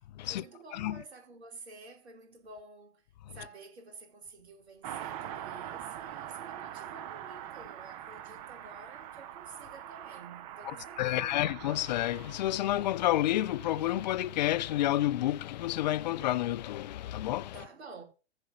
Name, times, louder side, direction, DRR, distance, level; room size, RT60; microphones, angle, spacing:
voice 1, 0.3-3.0 3.3-11.5 17.5-18.0, right 3 dB, 70° right, 4.9 m, -50 dB
Car passing by, 4.8-14.8 15.0-15.1, right 11 dB, 35° right, 0.9 m, -44 dB
voice 2, 11.0-17.5, left 14 dB, 40° left, 0.7 m, -29 dB
15.0 x 5.4 x 7.6 m
figure-of-eight pair, 120°, 34 cm